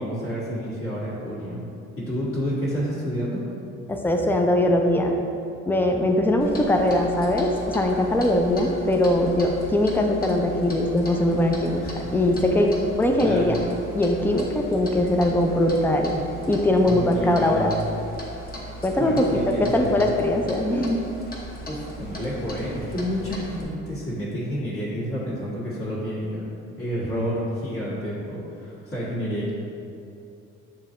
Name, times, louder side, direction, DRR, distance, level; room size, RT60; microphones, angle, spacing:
voice 1, 0.0-1.6 2.0-3.4 11.8-11.9 13.2-13.5 16.8-17.8 19.0-20.1 21.7-29.5, equal, 45° left, -9 dB, 1.5 m, -29 dB
voice 2, 3.9-5.1 5.7-11.9 12.1-13.6 13.9-16.2 16.4-17.7 18.8-21.1, left 1 dB, 5° left, 2 dB, 0.4 m, -21 dB
Clock, 6.4-23.6, right 1 dB, 30° left, 0.9 m, -38 dB
7.0 x 2.7 x 2.5 m, 2.7 s
cardioid pair, 90°, 30 cm